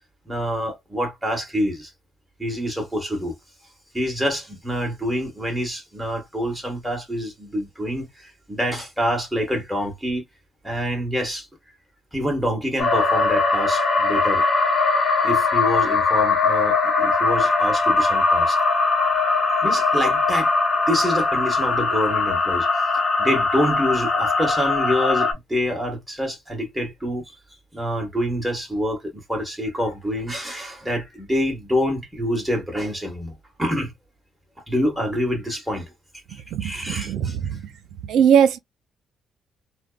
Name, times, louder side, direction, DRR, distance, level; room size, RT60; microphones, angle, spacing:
voice 1, 0.3-1.9 2.4-3.3 3.9-10.2 10.6-11.5 12.1-14.4 15.2-18.6 19.0-19.1 19.6-20.5 20.9-22.7 22.9-27.4 27.7-33.9 34.7-35.9 36.3-37.6, equal, 10° right, 1.6 m, -26 dB
sound 1, 12.8-25.3, left 3 dB, 40° left, 1.0 m, -20 dB
voice 2, 36.5-37.6 38.0-38.6, right 8 dB, 80° right, 0.5 m, -20 dB
3.3 x 2.1 x 2.4 m
cardioid pair, 90°, 0 cm